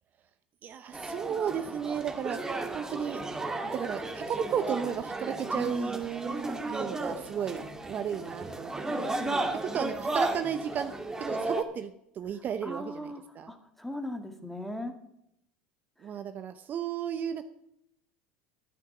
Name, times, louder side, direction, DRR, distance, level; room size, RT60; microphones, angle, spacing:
voice 1, 0.6-2.4 2.7-3.2 3.6-9.1 9.7-10.9 11.2-13.5 16.0-17.4, right 8 dB, 40° right, 10 dB, 0.8 m, -34 dB
sound 1, 0.9-11.6, right 2 dB, 10° right, 1.9 m, -34 dB
voice 2, 5.5-6.0 9.1-9.5 12.6-13.2 13.5-14.9, left 1 dB, 5° left, 6 dB, 2.1 m, -38 dB
11.5 x 9.5 x 6.0 m, 0.77 s
hypercardioid pair, 85°, 5 cm